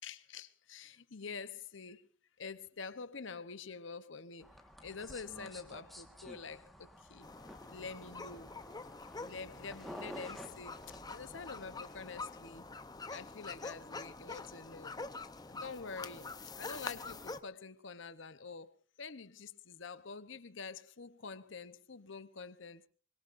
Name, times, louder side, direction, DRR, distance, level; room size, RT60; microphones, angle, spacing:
voice 1, 0.0-2.1 2.4-4.5 4.8-7.3 7.7-8.5 9.2-10.7 11.1-12.7 13.1-14.9 15.5-22.8, left 5 dB, 65° left, 0.9 m, -47 dB
sound 1, 4.4-12.2, equal, ahead, 1.5 m, -52 dB
sound 2, 7.2-17.4, left 3 dB, 20° left, 0.8 m, -46 dB
25.0 x 22.0 x 2.6 m
head